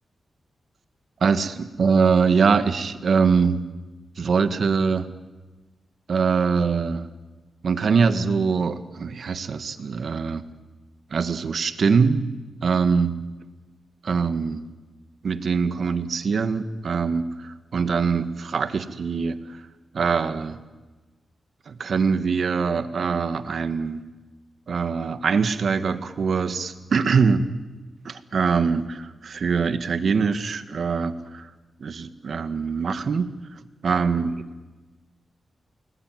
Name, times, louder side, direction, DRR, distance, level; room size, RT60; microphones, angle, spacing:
voice 1, 1.2-3.6 4.2-5.1 6.1-7.1 7.6-10.4 11.1-12.3 12.6-13.2 14.0-14.6 15.2-19.4 19.9-20.6 21.7-24.0 24.7-27.5 28.1-31.5 31.8-33.3 33.8-34.4, right 5 dB, 65° right, 11 dB, 1.8 m, -23 dB
29.5 x 20.0 x 9.4 m, 1.2 s
cardioid pair, 90°, 0 cm